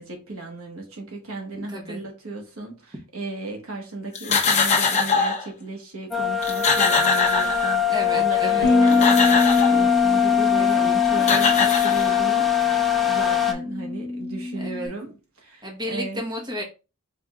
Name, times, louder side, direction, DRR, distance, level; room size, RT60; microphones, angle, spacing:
voice 1, 0.0-16.2, right 3 dB, 75° right, 1.2 m, -35 dB
voice 2, 1.6-2.0 7.9-8.7 10.6-11.2 14.5-14.9 15.6-16.6, equal, 20° right, 1.0 m, -33 dB
sound 1, 4.1-5.5 6.1-6.2 6.4-8.0 8.7-9.8 10.8-10.9 11.2-12.4, left 4 dB, 30° left, 0.7 m, -22 dB
sound 2, 6.1-13.5, left 10 dB, ahead, 0.4 m, -22 dB
Bass guitar, 8.6-14.9, left 2 dB, 75° left, 0.6 m, -24 dB
4.8 x 3.5 x 2.3 m
head